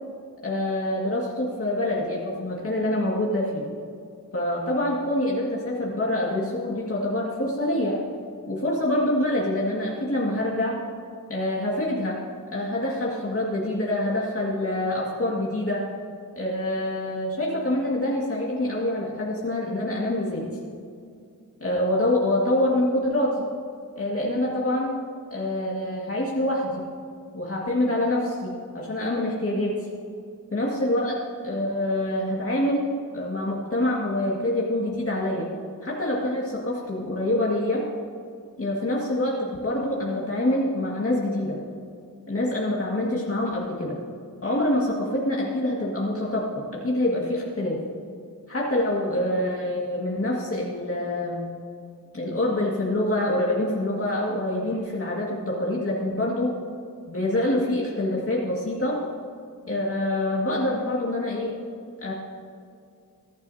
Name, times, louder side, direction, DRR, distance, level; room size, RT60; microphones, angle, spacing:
voice 1, 0.4-3.6 4.3-8.0 8.5-10.8 11.3-12.2 12.5-15.8 16.4-20.4 21.6-23.3 24.0-25.0 25.3-26.9 27.3-29.8 30.5-32.9 33.1-35.5 35.8-37.8 38.6-41.6 42.3-44.0 44.4-47.8 48.5-51.5 52.1-56.5 57.1-59.0 59.7-61.5 62.0-62.1, left 1 dB, 40° left, -4 dB, 2.0 m, -26 dB
21.0 x 11.5 x 2.8 m, 2.4 s
wide cardioid pair, 120°, 35 cm